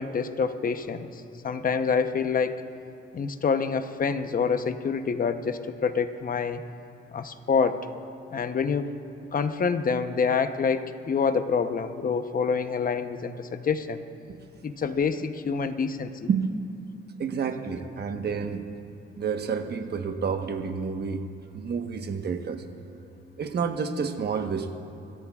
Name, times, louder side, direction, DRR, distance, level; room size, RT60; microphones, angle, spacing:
voice 1, 0.0-2.6 3.1-6.6 7.1-7.9 8.3-8.9 9.3-14.0 14.6-16.3, left 5 dB, 45° left, 9 dB, 0.9 m, -27 dB
voice 2, 16.3-16.6 17.2-18.6 19.2-21.2 21.5-22.6 23.4-24.7, right 6 dB, 50° right, 6 dB, 1.2 m, -29 dB
25.0 x 13.5 x 2.4 m, 2.6 s
cardioid pair, 80°, 21 cm